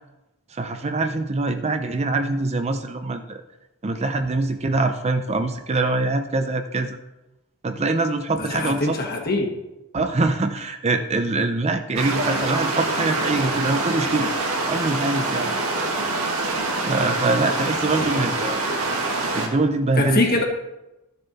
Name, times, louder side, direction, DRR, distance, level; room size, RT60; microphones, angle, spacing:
voice 1, 0.5-3.4 3.8-7.0 7.6-9.0 9.9-14.3 14.6-15.5 16.8-18.6 19.3-20.2, right 2 dB, 30° right, 7 dB, 0.5 m, -24 dB
voice 2, 8.4-9.5 18.0-18.1 20.0-20.4, left 2 dB, 45° left, 1 dB, 1.7 m, -23 dB
sound 1, 12.0-19.5, right 2 dB, 75° right, 1.8 m, -25 dB
13.0 x 6.7 x 4.1 m, 1.0 s
head